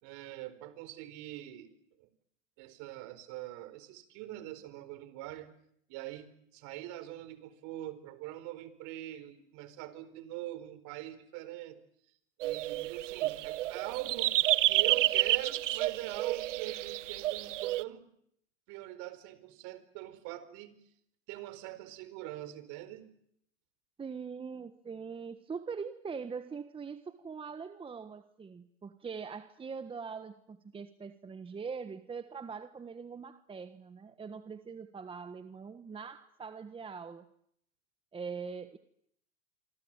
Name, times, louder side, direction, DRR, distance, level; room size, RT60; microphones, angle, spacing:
voice 1, 0.0-2.1 2.6-5.5 5.9-11.8 12.4-18.1 18.7-20.8 21.3-23.1, right 15 dB, 50° right, 14 dB, 4.5 m, -43 dB
sound 1, 12.4-17.8, right 15 dB, 70° right, 1.1 m, -30 dB
voice 2, 24.0-37.2 38.1-38.8, right 5 dB, 15° right, 10 dB, 1.4 m, -42 dB
26.0 x 25.5 x 9.0 m, 0.71 s
hypercardioid pair, 120°, 38 cm